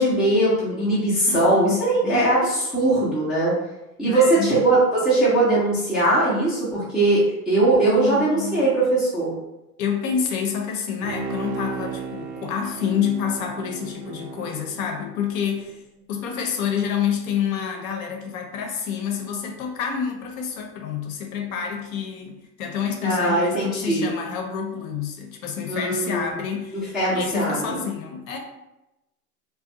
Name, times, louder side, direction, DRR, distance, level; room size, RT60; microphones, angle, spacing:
voice 1, 0.0-3.6 4.0-9.3 23.0-24.1 25.7-26.2 26.9-27.8, right 2 dB, ahead, -10 dB, 0.4 m, -20 dB
voice 2, 1.3-2.3 4.0-4.6 7.8-8.7 9.8-15.8 16.1-26.8 27.1-28.4, left 7 dB, 60° left, 3 dB, 0.7 m, -28 dB
Bowed string instrument, 11.0-15.6 16.0-16.1, right 4 dB, 55° right, 0.5 m, -34 dB
2.5 x 2.2 x 2.6 m, 0.94 s
hypercardioid pair, 110°, 48 cm